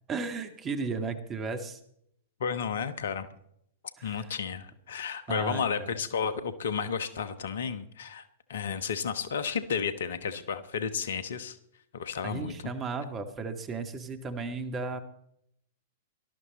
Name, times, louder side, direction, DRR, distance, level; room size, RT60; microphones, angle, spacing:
voice 1, 0.1-1.8 4.0-4.3 5.3-5.9 12.2-15.0, right 4 dB, 25° right, 8 dB, 1.9 m, -35 dB
voice 2, 2.4-3.3 4.0-11.6 11.9-12.7, left 6 dB, 60° left, 12 dB, 1.2 m, -32 dB
18.5 x 12.5 x 4.2 m, 0.71 s
figure-of-eight pair, 100°, 0 cm